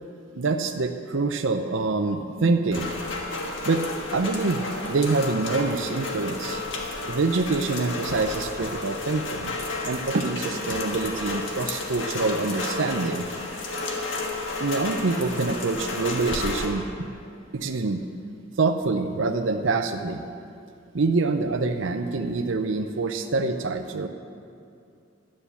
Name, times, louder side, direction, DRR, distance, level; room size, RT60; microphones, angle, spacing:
voice 1, 0.3-2.9 3.6-6.6 7.1-9.6 9.8-13.3 14.6-17.1 17.5-18.0 18.6-20.2 20.9-24.1, right 3 dB, 70° right, 6 dB, 0.6 m, -26 dB
Rain, 2.7-16.7, left 2 dB, 65° left, 1.5 m, -32 dB
10.0 x 7.5 x 8.3 m, 2.6 s
head